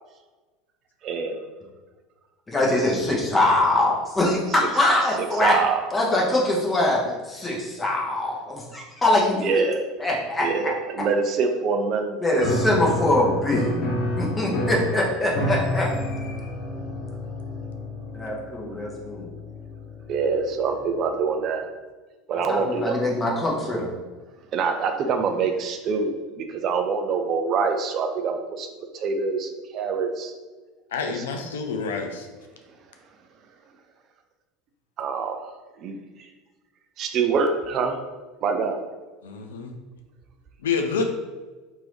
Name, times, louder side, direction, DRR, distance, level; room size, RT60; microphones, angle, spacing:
voice 1, 1.0-1.4 3.4-3.6 5.2-5.8 9.3-9.8 10.4-12.6 20.1-21.7 22.3-23.0 24.5-30.3 31.2-31.3 35.0-35.5 35.8-36.0 37.0-38.0 38.4-38.8, right 5 dB, 40° right, 6 dB, 0.3 m, -25 dB
voice 2, 2.5-5.6 5.9-9.6 10.0-10.5 12.2-13.7 14.2-15.9 18.1-19.3 22.5-23.9, left 1 dB, 15° left, -2 dB, 0.9 m, -23 dB
Piano, 12.4-20.9, left 1 dB, 50° left, 0.7 m, -30 dB
voice 3, 30.9-32.3 39.2-39.8 40.6-41.1, left 5 dB, 70° left, 4 dB, 0.3 m, -28 dB
2.9 x 2.6 x 3.3 m, 1.3 s
figure-of-eight pair, 75°, 0 cm